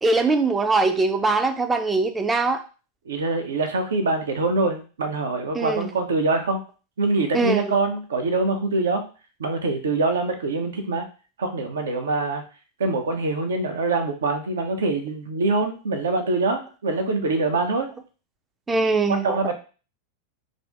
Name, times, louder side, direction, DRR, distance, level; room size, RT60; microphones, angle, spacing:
voice 1, 0.0-2.6 5.5-5.9 7.3-7.7 18.7-19.5, right 3 dB, 15° right, 0.4 m, -22 dB
voice 2, 3.1-6.6 7.0-9.0 9.4-11.1 11.4-12.4 12.8-17.9 19.2-19.5, right 3 dB, 65° right, 0.6 m, -24 dB
2.6 x 2.5 x 3.4 m
figure-of-eight pair, 90°, 0 cm